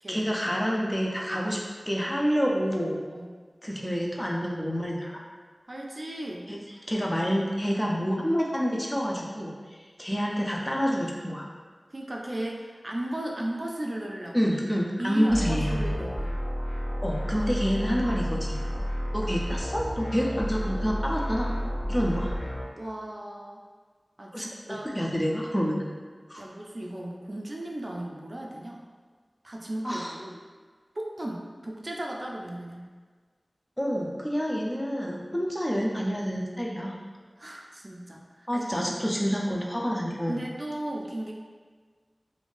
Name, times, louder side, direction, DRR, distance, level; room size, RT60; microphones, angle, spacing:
voice 1, 0.1-1.6 1.9-3.0 3.6-5.2 6.5-6.6 6.9-11.5 14.3-15.9 17.0-18.6 19.1-21.5 21.9-22.3 24.3-25.9 26.3-26.4 29.8-30.1 33.8-37.0 38.5-40.4, equal, 20° left, -2 dB, 0.5 m, -28 dB
voice 2, 5.7-6.5 11.9-14.4 15.0-16.3 17.3-17.5 22.8-23.6 24.2-25.1 26.4-28.8 29.4-30.4 31.0-32.9 37.4-38.9 40.3-41.3, right 1 dB, 50° right, -1 dB, 0.4 m, -36 dB
sound 1, 15.3-22.6, equal, 40° left, 1.2 m, -31 dB
3.1 x 2.6 x 2.5 m, 1.5 s
wide cardioid pair, 50°, 0 cm